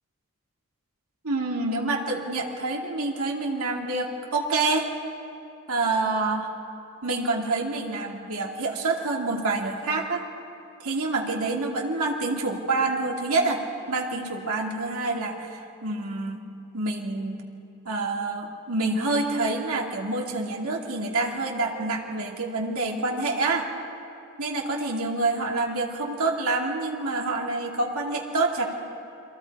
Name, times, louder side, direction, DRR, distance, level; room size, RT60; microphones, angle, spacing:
voice 1, 1.2-4.9 5.7-6.5 7.0-10.3 10.8-16.4 16.7-17.4 17.8-23.7 24.4-28.6, right 3 dB, 70° right, -1 dB, 2.6 m, -27 dB
29.5 x 23.0 x 4.8 m, 2.7 s
head